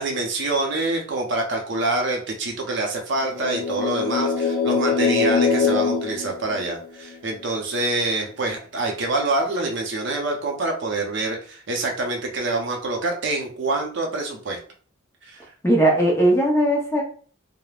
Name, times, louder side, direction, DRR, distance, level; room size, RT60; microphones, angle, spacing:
voice 1, 0.0-14.6 15.2-15.4, right 2 dB, 60° right, 1 dB, 0.6 m, -26 dB
sound 1, 3.2-7.1, left 5 dB, 90° left, 0.4 m, -23 dB
voice 2, 15.6-17.0, right 1 dB, 15° left, -2 dB, 0.6 m, -18 dB
3.2 x 2.0 x 2.3 m, 0.43 s
head